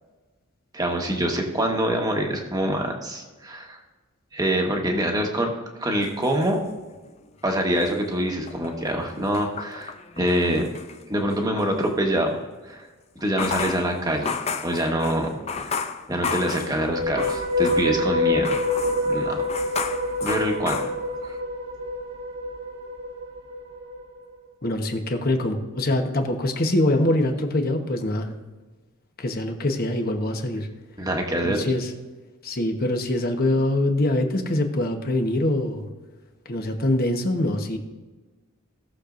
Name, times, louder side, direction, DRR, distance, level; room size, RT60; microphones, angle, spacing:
voice 1, 0.7-3.8 4.3-5.5 5.8-6.6 7.4-10.7 11.1-12.8 13.2-14.3 14.6-15.8 16.1-18.5 19.0-19.4 20.2-20.8 21.2-21.3 31.0-31.6, right 1 dB, 20° right, 1 dB, 1.3 m, -25 dB
sound 1, 6.0-7.2 7.6-11.7 13.2-18.1 18.4-21.4, left 5 dB, 30° left, 0.5 m, -33 dB
sound 2, 16.8-24.0, left 1 dB, 65° right, 1.4 m, -27 dB
voice 2, 24.6-28.3 29.2-30.7 31.4-31.9 32.4-35.9 36.5-37.8, left 1 dB, 45° left, 4 dB, 1.1 m, -24 dB
17.5 x 6.7 x 2.6 m, 1.3 s
head